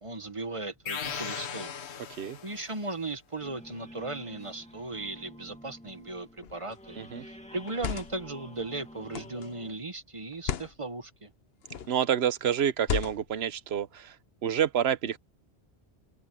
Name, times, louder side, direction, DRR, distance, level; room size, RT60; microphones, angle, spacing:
voice 1, 0.0-1.7 2.4-11.3, right 2 dB, 30° right, 1.2 m, -37 dB
sound 1, 0.9-2.7, left 7 dB, 90° left, 1.4 m, -37 dB
sound 2, 3.4-9.7, left 1 dB, 5° left, 2.3 m, -49 dB
sound 3, 6.4-6.7 7.6-8.3 9.1-9.5 10.3-10.7 11.6-12.0 12.8-13.4, left 7 dB, 70° left, 1.1 m, -34 dB
voice 2, 11.9-14.2 14.4-15.2, right 9 dB, 75° right, 1.0 m, -28 dB
omnidirectional pair, 1.1 m